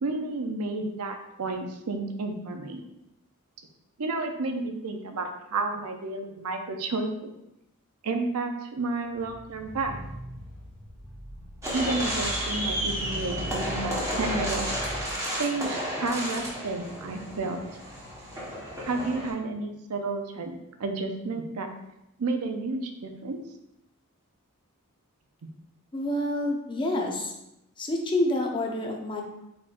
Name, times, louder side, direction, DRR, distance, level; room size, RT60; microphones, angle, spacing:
voice 1, 0.0-2.8 4.0-7.3 8.0-10.0 11.7-14.6 15.3-17.6 18.8-21.7 22.2-23.4, right 3 dB, 80° right, 5 dB, 0.5 m, -31 dB
sound 1, 9.0-15.1, equal, 70° left, 1.1 m, -40 dB
sound 2, 11.6-19.3, equal, 15° right, 1.1 m, -32 dB
voice 2, 25.9-27.3 27.8-29.2, left 1 dB, 20° left, 0 dB, 0.6 m, -28 dB
4.3 x 4.3 x 2.5 m, 0.88 s
head